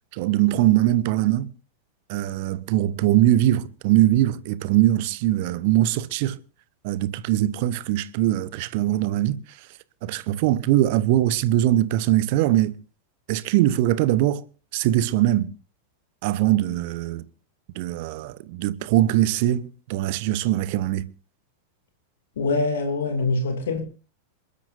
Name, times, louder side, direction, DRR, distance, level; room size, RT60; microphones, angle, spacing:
voice 1, 0.1-1.5 2.1-6.4 6.8-9.4 10.0-12.7 13.3-14.4 14.7-15.5 16.2-17.2 17.7-21.1, right 14 dB, 50° right, 0.9 m, -21 dB
voice 2, 22.4-23.8, left 3 dB, 60° left, 2.6 m, -24 dB
27.0 x 12.5 x 2.6 m
figure-of-eight pair, 90°, 0 cm